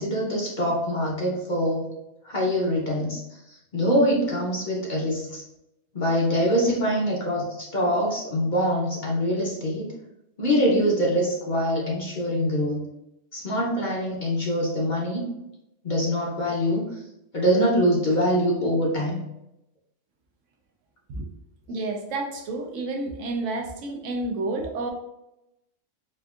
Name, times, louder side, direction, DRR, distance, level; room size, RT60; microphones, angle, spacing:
voice 1, 0.0-1.9 2.2-5.4 5.9-9.9 10.4-12.9 13.3-15.2 15.8-17.0 17.3-19.2, equal, 45° left, -3 dB, 0.7 m, -24 dB
voice 2, 21.7-24.9, right 2 dB, 75° right, 3 dB, 0.9 m, -30 dB
4.3 x 2.5 x 2.3 m, 0.85 s
omnidirectional pair, 1.3 m